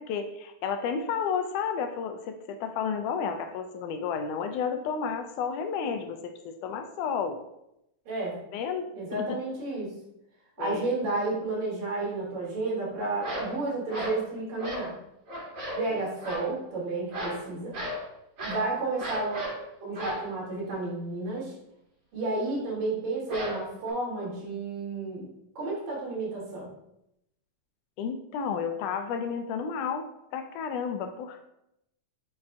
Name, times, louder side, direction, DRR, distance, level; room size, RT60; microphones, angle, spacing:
voice 1, 0.0-7.4 8.5-8.9 9.1-9.4 10.6-10.8 15.9-16.0 28.0-30.1 30.3-31.5, left 6 dB, 80° left, 6 dB, 2.0 m, -32 dB
voice 2, 8.1-8.4 8.9-9.9 10.6-15.0 15.7-17.8 18.4-19.4 19.8-21.6 22.1-25.3 25.6-26.7, right 2 dB, 85° right, -6 dB, 4.1 m, -31 dB
sound 1, 13.2-13.6 13.9-14.2 14.6-14.9 15.3-15.9 16.2-16.5 17.1-17.4 17.7-18.0 18.4-18.7 19.0-19.6 20.0-20.3 23.3-23.9, equal, 40° right, 3.2 m, -34 dB
7.2 x 6.1 x 2.4 m, 0.82 s
omnidirectional pair, 3.8 m